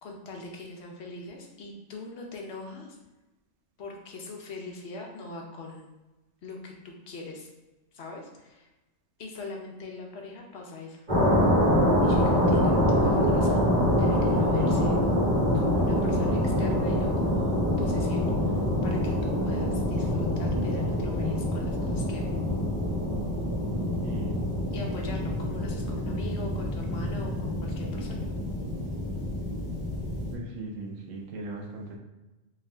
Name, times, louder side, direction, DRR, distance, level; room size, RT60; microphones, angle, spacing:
voice 1, 0.0-2.9 3.8-5.9 6.4-6.7 7.1-7.5 7.9-8.7 9.2-11.1 12.0-13.7 14.0-15.0 15.5-18.2 18.5-22.2 24.7-28.3, left 3 dB, 60° left, 0 dB, 0.9 m, -42 dB
sound 1, 11.1-30.3, left 1 dB, 35° right, 1.4 m, -25 dB
voice 2, 24.0-24.5 30.3-32.0, right 2 dB, 75° right, 1 dB, 1.1 m, -38 dB
3.5 x 2.8 x 3.3 m, 1.1 s
omnidirectional pair, 1.4 m